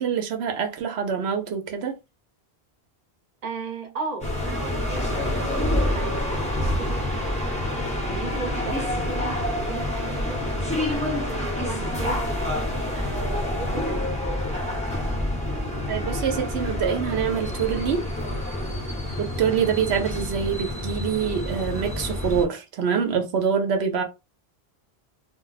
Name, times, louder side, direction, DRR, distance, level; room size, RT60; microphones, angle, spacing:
voice 1, 0.0-2.0 15.9-18.0 19.2-24.0, right 7 dB, 85° right, 0.9 m, -25 dB
voice 2, 3.4-7.4 8.1-14.5, right 4 dB, 40° right, 0.9 m, -36 dB
sound 1, 4.2-22.5, left 1 dB, 10° left, 0.7 m, -27 dB
2.3 x 2.1 x 3.9 m
omnidirectional pair, 1.1 m